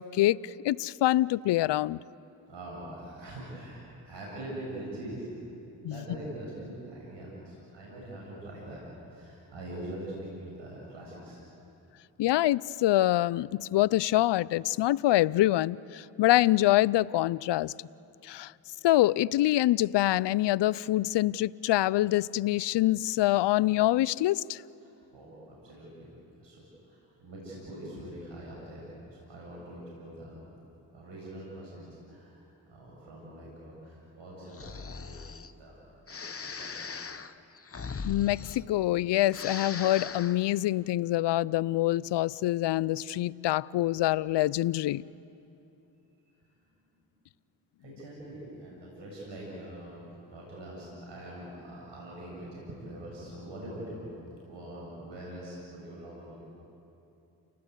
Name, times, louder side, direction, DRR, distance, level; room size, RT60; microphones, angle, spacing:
voice 1, 0.0-2.0 5.8-6.0 12.2-17.7 18.2-18.5 18.8-24.6 38.0-45.0, left 15 dB, 65° left, 22 dB, 0.6 m, -25 dB
voice 2, 2.5-3.8 4.1-5.5 5.8-8.8 9.1-10.1 10.4-11.4 24.8-26.1 26.4-28.8 29.1-30.4 30.9-32.4 32.7-35.2 35.5-35.8 36.1-36.9 47.8-54.1 54.5-56.4, right 1 dB, 70° right, -4 dB, 7.7 m, -43 dB
Breathing, 34.5-35.5 36.1-39.0 39.3-40.4, left 5 dB, 30° left, 1.2 m, -39 dB
29.5 x 19.0 x 8.3 m, 2.8 s
supercardioid pair, 45°, 46 cm